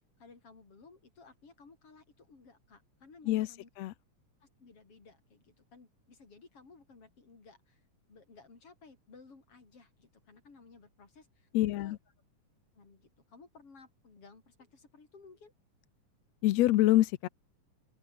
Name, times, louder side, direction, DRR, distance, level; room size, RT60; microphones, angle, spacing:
voice 1, 0.2-3.7 4.4-7.8 8.1-11.5 11.8-12.0 12.8-15.5, left 4 dB, 45° left, 5.7 m, -57 dB
voice 2, 3.3-3.9 11.5-12.0 16.4-17.3, left 15 dB, 75° left, 1.7 m, -26 dB
open air
omnidirectional pair, 3.7 m